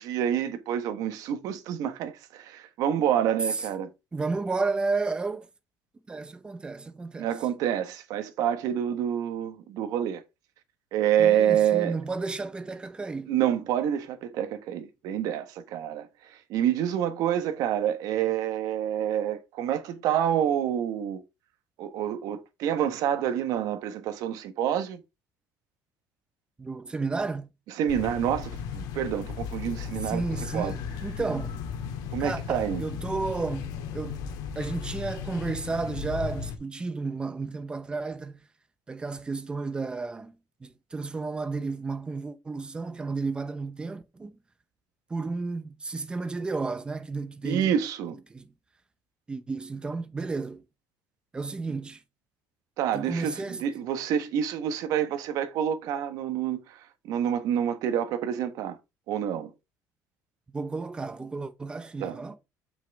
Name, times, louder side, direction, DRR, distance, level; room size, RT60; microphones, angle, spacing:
voice 1, 0.0-3.9 7.2-10.2 10.9-11.9 13.3-21.2 21.8-25.0 27.8-30.2 30.5-30.7 32.1-32.8 47.4-48.2 52.8-58.8 59.1-59.5 62.0-62.2, right 10 dB, 60° right, 1.3 m, -27 dB
voice 2, 4.1-5.5 6.1-7.3 11.2-13.4 26.6-27.5 29.6-31.6 32.2-34.3 34.6-38.5 38.9-40.3 40.6-44.3 45.1-47.8 48.3-48.5 49.3-50.6 51.3-52.0 52.9-53.6 60.5-62.4, right 3 dB, 15° right, 0.8 m, -32 dB
sound 1, 27.9-36.6, left 7 dB, 70° left, 1.9 m, -36 dB
7.5 x 6.1 x 3.5 m
cardioid pair, 160°, 7 cm